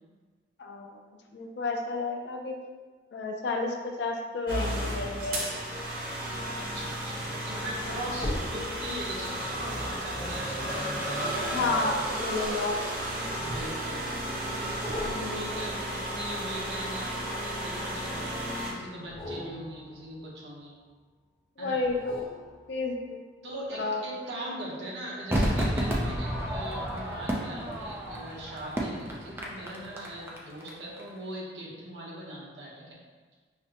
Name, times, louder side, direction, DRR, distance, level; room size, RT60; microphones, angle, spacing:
voice 1, 0.6-1.0 1.3-2.5 3.1-5.4 11.5-12.8 21.6-22.3 22.7-23.2 23.8-24.0, left 3 dB, 70° left, 2 dB, 0.4 m, -31 dB
sound 1, 4.5-18.7, right 1 dB, 50° right, 0.7 m, -33 dB
voice 2, 6.6-10.8 13.4-17.1 17.4-20.7 21.6-21.8 23.4-33.0, right 1 dB, 80° right, -4 dB, 1.0 m, -40 dB
sound 2, 8.2-12.8 13.5-14.1 14.8-17.8 19.0-21.1 21.8-23.2 23.7-23.8, left 1 dB, 20° left, 0.9 m, -42 dB
Crowd / Fireworks, 25.3-30.7 31.0-31.1, equal, 15° right, 0.4 m, -31 dB
5.7 x 2.1 x 2.8 m, 1.4 s
head